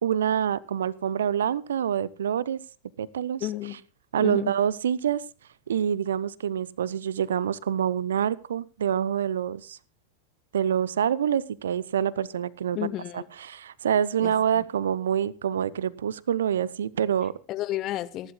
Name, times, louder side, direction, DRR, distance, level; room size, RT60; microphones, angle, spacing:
voice 1, 0.0-2.6 3.0-3.5 4.1-5.2 5.7-9.8 10.5-12.8 13.1-17.3, right 9 dB, 65° right, 0.6 m, -26 dB
voice 2, 3.4-3.7 4.2-4.5 12.7-13.2 14.2-14.6 17.5-18.3, left 14 dB, 35° left, 1.1 m, -32 dB
27.5 x 11.5 x 2.3 m
figure-of-eight pair, 90°, 0 cm